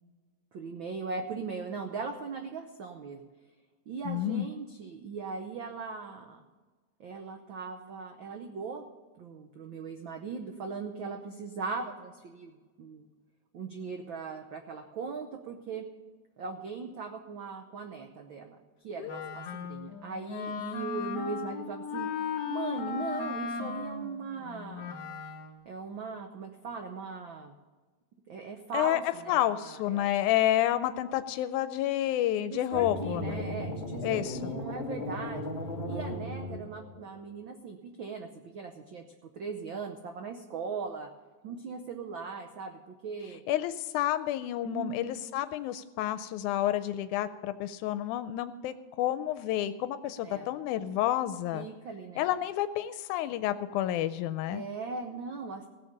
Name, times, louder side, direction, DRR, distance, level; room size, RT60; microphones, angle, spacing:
voice 1, 0.5-3.2 3.9-6.4 7.0-8.9 9.2-13.1 13.5-15.8 16.4-18.6 18.8-22.1 22.5-25.0 25.7-27.5 28.3-30.3 32.5-35.4 35.8-41.1 41.4-43.4 44.6-45.2 50.2-50.5 51.5-52.2 54.5-55.7, right 5 dB, 85° right, 5 dB, 1.1 m, -39 dB
voice 2, 4.1-4.5 19.0-19.3 28.7-33.4 34.0-34.5 43.5-51.7 52.2-54.6, left 13 dB, 90° left, 12 dB, 2.0 m, -30 dB
Wind instrument woodwind instrument, 19.1-25.6, left 6 dB, 70° left, 1.0 m, -37 dB
sound 1, 32.7-37.0, left 1 dB, 45° left, 0.5 m, -36 dB
17.0 x 7.2 x 6.5 m, 1.3 s
omnidirectional pair, 3.5 m